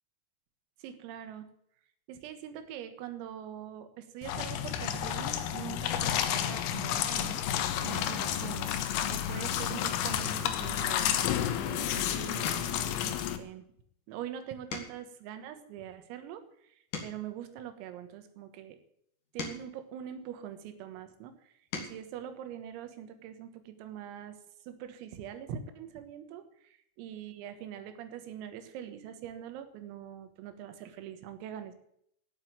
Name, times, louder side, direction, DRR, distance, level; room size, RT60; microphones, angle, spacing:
voice 1, 0.8-1.5 2.1-7.3 7.8-8.7 9.1-11.1 11.6-13.6 14.1-16.4 17.0-18.8 19.3-21.3 21.8-24.4 24.7-31.8, right 10 dB, 85° right, 9 dB, 4.2 m, -43 dB
sound 1, 4.2-13.4, left 10 dB, 80° left, 3.9 m, -31 dB
sound 2, 7.9-8.3 8.8-9.2 9.5-9.7 10.2-12.0 12.3-15.2 15.8-18.3 19.0-20.8 21.4-22.1 23.5-23.6 23.9-24.1, left 5 dB, 45° left, 3.8 m, -45 dB
17.0 x 7.5 x 8.8 m, 0.69 s
omnidirectional pair, 5.9 m